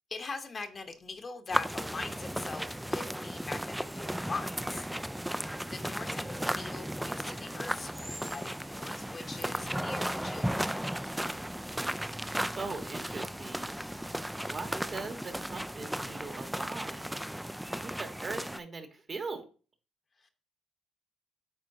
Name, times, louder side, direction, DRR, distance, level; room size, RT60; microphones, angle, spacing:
voice 1, 0.1-5.3 5.6-11.4 20.2-20.3, left 4 dB, 40° left, 1.0 m, -42 dB
sound 1, 1.5-18.6, equal, 5° right, 0.3 m, -35 dB
voice 2, 9.5-9.8 12.5-13.8 14.5-17.2 17.8-19.4, right 3 dB, 40° right, 1.3 m, -41 dB
9.3 x 3.7 x 2.7 m
supercardioid pair, 60°, 0 cm